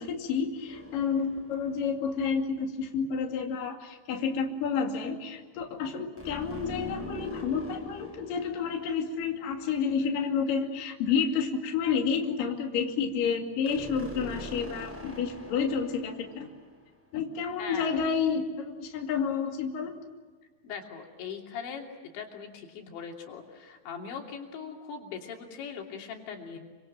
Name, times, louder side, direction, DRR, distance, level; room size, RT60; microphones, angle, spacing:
voice 1, 0.0-16.5 17.1-19.9, left 6 dB, 55° left, 2 dB, 3.9 m, -30 dB
sound 1, 0.7-2.3 6.2-9.9 13.7-17.0, left 1 dB, 5° right, 5.8 m, -43 dB
voice 2, 17.6-17.9 20.6-21.9 22.1-26.6, left 6 dB, 90° left, 2 dB, 5.3 m, -40 dB
28.5 x 25.5 x 7.6 m, 1.4 s
omnidirectional pair, 5.0 m